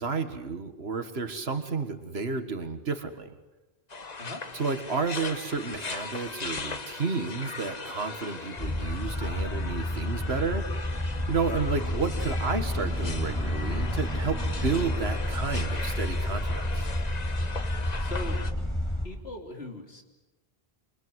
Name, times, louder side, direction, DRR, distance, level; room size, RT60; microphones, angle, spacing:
voice 1, 0.0-3.3 4.5-10.8 11.3-16.9, right 4 dB, 85° right, 8 dB, 2.0 m, -31 dB
sound 1, 3.9-18.5, left 4 dB, 45° left, 1.3 m, -39 dB
sound 2, 8.6-19.0, left 1 dB, 25° left, 4.9 m, -30 dB
voice 2, 18.0-18.4 19.0-20.0, left 2 dB, 85° left, 3 dB, 3.8 m, -39 dB
28.5 x 25.0 x 8.1 m, 1.1 s
omnidirectional pair, 1.0 m